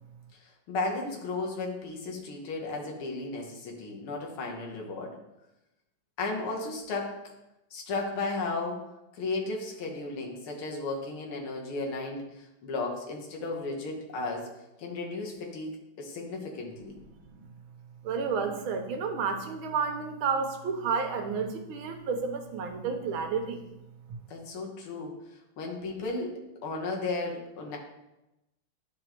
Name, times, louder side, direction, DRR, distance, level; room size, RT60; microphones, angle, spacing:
voice 1, 0.4-5.2 6.2-7.2 7.7-14.5 14.8-16.9 24.3-27.8, left 3 dB, 80° left, 0 dB, 2.0 m, -35 dB
voice 2, 18.0-23.6, right 5 dB, 75° right, 5 dB, 1.6 m, -31 dB
10.0 x 4.6 x 2.9 m, 0.93 s
omnidirectional pair, 2.3 m